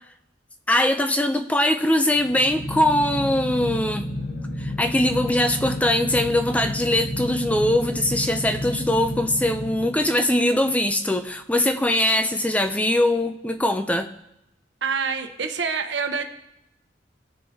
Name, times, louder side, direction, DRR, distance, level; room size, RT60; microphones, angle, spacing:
voice 1, 0.7-4.0 4.6-14.1, left 1 dB, 10° left, 7 dB, 0.4 m, -22 dB
sound 1, 2.1-10.4, left 1 dB, 65° left, 2.4 m, -31 dB
voice 2, 14.8-16.2, right 5 dB, 85° right, 6 dB, 1.0 m, -26 dB
17.5 x 6.5 x 2.8 m, 0.83 s
head